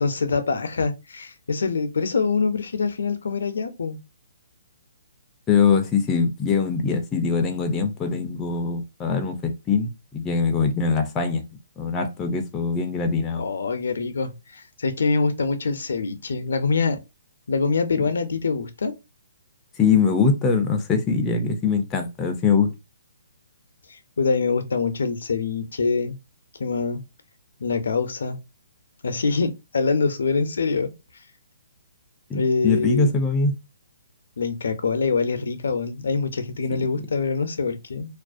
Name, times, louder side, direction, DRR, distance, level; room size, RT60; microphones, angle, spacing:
voice 1, 0.0-4.0 13.3-17.0 17.5-18.9 23.9-26.2 26.6-27.0 27.6-28.4 29.0-30.9 32.3-33.2 34.4-38.1, left 4 dB, 80° left, 0.4 m, -24 dB
voice 2, 5.5-11.4 11.8-13.5 19.8-22.7 32.3-33.6 36.7-36.8, left 5 dB, 15° left, 0.4 m, -22 dB
2.4 x 2.1 x 2.5 m
hypercardioid pair, 150°, 0 cm